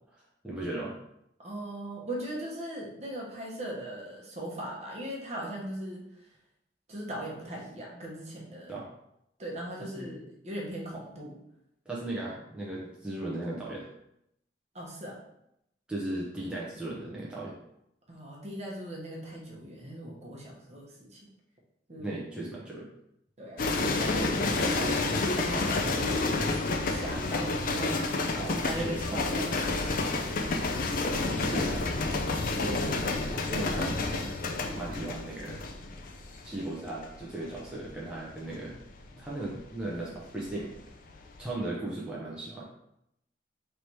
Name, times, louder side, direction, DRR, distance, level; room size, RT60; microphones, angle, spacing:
voice 1, 0.4-0.9 8.7-8.8 9.8-10.1 11.9-13.9 15.9-17.6 22.0-22.9 28.4-28.6 28.8-29.1 31.3-32.2 32.6-34.0 34.7-35.6 36.4-38.8 39.1-40.7 41.4-42.6, right 2 dB, 5° right, -7 dB, 0.6 m, -37 dB
voice 2, 1.4-6.1 6.9-8.7 9.4-11.4 14.7-15.2 18.1-21.2 21.9-22.2 23.4-29.9, right 1 dB, 40° right, -3 dB, 1.0 m, -39 dB
sound 1, 23.6-40.8 41.1-41.5, left 3 dB, 50° left, 0.4 m, -30 dB
3.3 x 2.8 x 4.5 m, 0.80 s
head